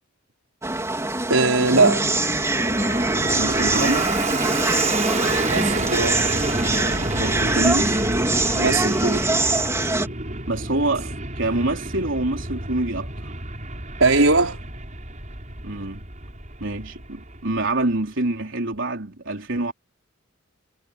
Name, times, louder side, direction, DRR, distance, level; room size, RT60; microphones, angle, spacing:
sound 1, 0.6-10.1, right 2 dB, 15° right, 3.6 m, -23 dB
voice 1, 1.3-2.1 5.5-6.2 8.5-9.3 14.0-14.6, right 3 dB, 80° right, 4.9 m, -20 dB
Fixed-wing aircraft airplane, 1.5-17.9, right 2 dB, 40° right, 5.8 m, -30 dB
voice 2, 3.4-4.1 7.2-7.9 10.5-13.3 15.6-16.0 16.6-19.7, right 2 dB, 65° right, 4.1 m, -26 dB
head